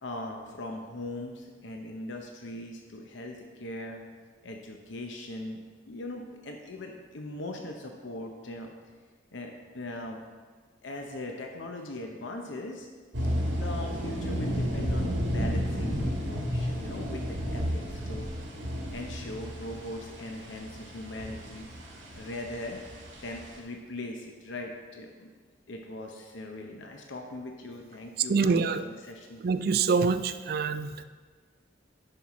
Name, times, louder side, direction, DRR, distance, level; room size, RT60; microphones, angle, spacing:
voice 1, 0.0-4.0 4.4-8.7 9.3-10.2 10.8-12.9 13.5-18.3 18.9-21.7 22.2-22.8 23.2-25.3 25.7-29.4, left 1 dB, 75° left, 2 dB, 0.8 m, -40 dB
sound 1, 13.1-23.6, equal, 75° right, 1.9 m, -32 dB
voice 2, 28.2-28.8 29.4-31.0, right 5 dB, 50° right, 11 dB, 0.4 m, -25 dB
10.5 x 5.5 x 4.2 m, 1.5 s
head